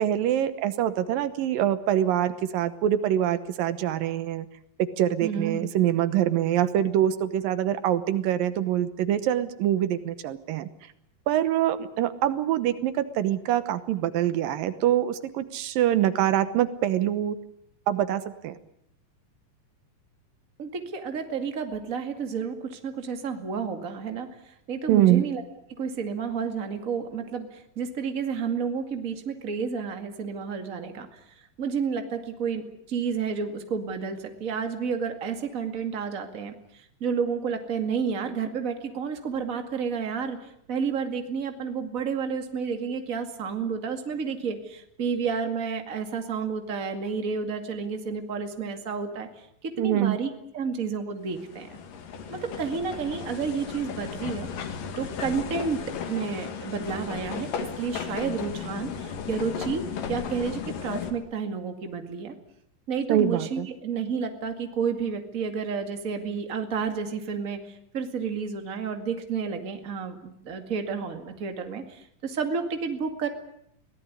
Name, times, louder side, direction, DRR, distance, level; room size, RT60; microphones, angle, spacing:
voice 1, 0.0-4.5 4.8-10.7 11.3-17.4 17.9-18.6 24.9-25.2 49.8-50.2 63.1-63.7, right 11 dB, 80° right, 13 dB, 2.8 m, -24 dB
voice 2, 5.2-5.7 20.6-25.4 25.8-49.3 49.6-51.8 52.3-54.5 55.0-55.8 56.1-57.5 57.8-62.3 62.9-73.3, right 6 dB, 30° right, 6 dB, 2.1 m, -31 dB
sound 1, 51.3-61.1, left 7 dB, 75° left, 3.5 m, -35 dB
23.5 x 17.5 x 9.8 m, 0.75 s
omnidirectional pair, 4.0 m